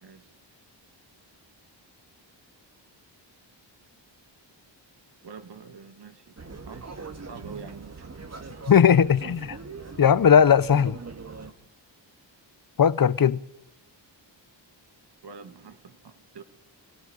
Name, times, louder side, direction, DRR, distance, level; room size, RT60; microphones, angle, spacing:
voice 1, 5.2-6.9 7.1-8.5 15.2-16.4, right 5 dB, 60° right, 2.4 m, -46 dB
sound 1, 6.4-11.5, right 4 dB, 35° right, 2.0 m, -41 dB
voice 2, 8.7-9.6 10.0-11.0 12.8-13.4, left 7 dB, 50° left, 1.0 m, -18 dB
29.0 x 18.0 x 9.0 m
wide cardioid pair, 105°, 45 cm